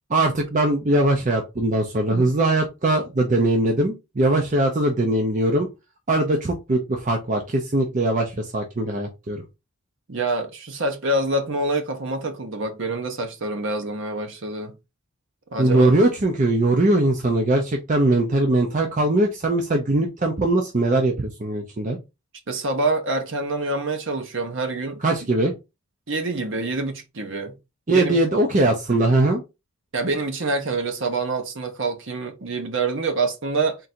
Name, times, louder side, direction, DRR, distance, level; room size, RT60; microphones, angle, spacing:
voice 1, 0.1-5.7 6.1-9.4 15.6-22.0 25.0-25.5 27.9-29.4, right 2 dB, 35° right, 0.6 m, -21 dB
voice 2, 10.1-14.7 15.5-15.9 22.5-25.0 26.1-27.5 27.9-28.2 29.9-33.8, right 2 dB, 55° right, 0.9 m, -26 dB
3.8 x 2.6 x 4.3 m
head